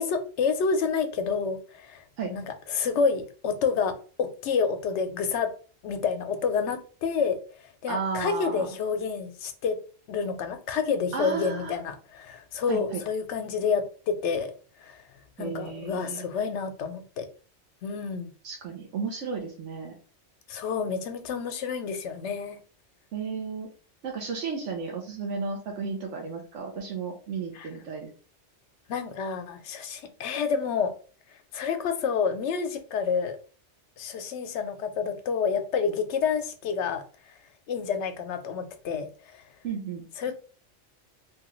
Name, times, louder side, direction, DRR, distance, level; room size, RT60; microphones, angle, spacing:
voice 1, 0.0-2.0 2.3-5.5 5.8-9.8 10.1-14.5 14.8-15.0 15.4-17.3 17.8-18.3 20.5-22.6 27.5-27.7 28.9-30.9 31.3-33.4 34.0-37.3 37.7-39.4 40.2-40.4, left 5 dB, 80° left, 8 dB, 0.9 m, -29 dB
voice 2, 7.9-8.7 11.1-11.7 12.7-13.0 15.4-16.2 18.4-19.9 23.1-23.7 24.0-28.1 39.6-40.0, right 5 dB, 90° right, 0 dB, 1.1 m, -33 dB
3.2 x 2.3 x 3.0 m, 0.38 s
omnidirectional pair, 1.2 m